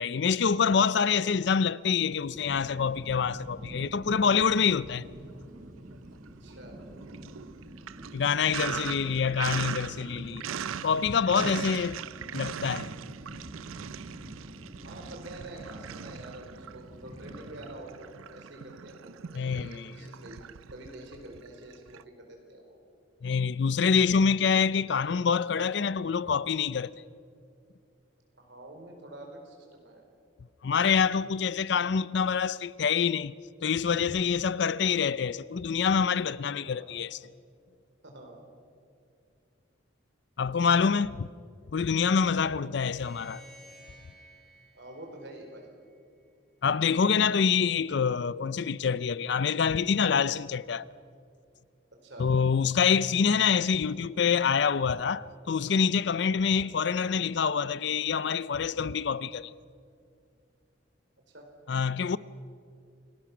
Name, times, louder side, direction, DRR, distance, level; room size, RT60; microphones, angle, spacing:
voice 1, 0.0-5.1 8.1-10.4 10.8-12.0 12.3-12.9 19.3-19.9 23.2-26.9 30.6-33.3 33.6-37.2 40.4-41.3 41.7-43.4 46.6-50.9 52.2-59.5 61.7-62.2, left 6 dB, 55° left, 0.4 m, -26 dB
sound 1, 2.2-17.7, right 1 dB, 40° right, 1.5 m, -47 dB
Sink (filling or washing), 4.7-5.6 5.9-22.0, right 8 dB, 90° right, 0.5 m, -40 dB
voice 2, 6.4-6.7 14.8-20.4 20.7-21.8 22.2-22.8 28.3-30.0 36.6-36.9 38.0-38.4 42.4-42.7 44.7-45.7 52.0-52.3 56.6-56.7 61.3-61.5, right 1 dB, 60° right, 4.4 m, -47 dB
sound 2, 42.7-46.0, equal, ahead, 6.5 m, -55 dB
29.0 x 18.5 x 6.1 m
head